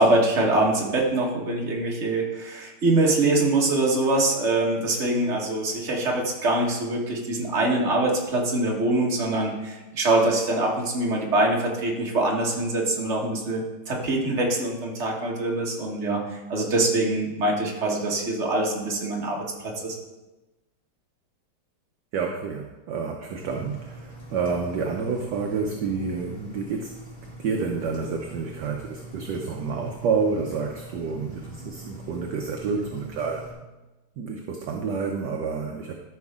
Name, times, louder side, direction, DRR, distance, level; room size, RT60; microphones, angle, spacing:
voice 1, 0.0-20.0, right 2 dB, 35° right, -1 dB, 1.6 m, -24 dB
voice 2, 22.1-27.0 27.4-33.5 34.2-35.9, right 5 dB, 65° right, 2 dB, 1.2 m, -29 dB
Engine, 23.4-33.5, right 1 dB, 25° left, 2.1 m, -43 dB
13.5 x 5.9 x 3.6 m, 1.1 s
omnidirectional pair, 2.3 m